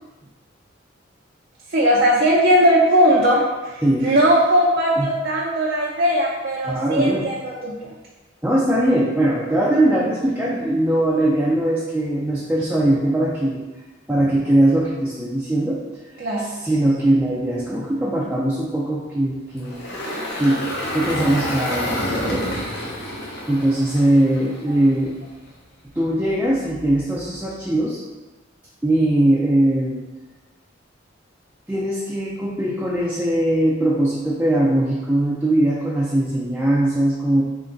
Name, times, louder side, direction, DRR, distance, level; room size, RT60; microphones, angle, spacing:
voice 1, 1.7-7.9 16.2-16.6, equal, 55° right, -4 dB, 0.6 m, -19 dB
voice 2, 6.7-7.2 8.4-13.6 14.1-15.8 16.6-19.9 20.4-20.6 20.9-22.4 23.5-25.2 25.9-28.0 28.8-30.0 31.7-37.4, right 1 dB, 5° right, -6 dB, 0.5 m, -20 dB
Engine, 19.6-24.9, left 1 dB, 60° left, 1.0 m, -28 dB
3.8 x 3.3 x 3.8 m, 1.2 s
head